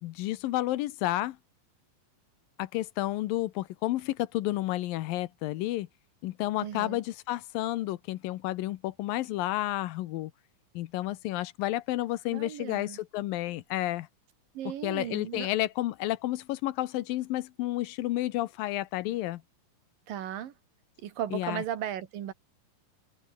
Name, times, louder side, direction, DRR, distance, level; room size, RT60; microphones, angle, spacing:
voice 1, 0.0-1.4 2.6-5.9 6.2-10.3 10.7-14.1 14.8-19.4 21.3-21.6, left 16 dB, 80° left, 2.5 m, -31 dB
voice 2, 6.6-7.0 12.3-13.0 14.5-15.5 20.1-20.5 21.0-22.3, right 10 dB, 75° right, 3.4 m, -36 dB
omnidirectional pair, 4.2 m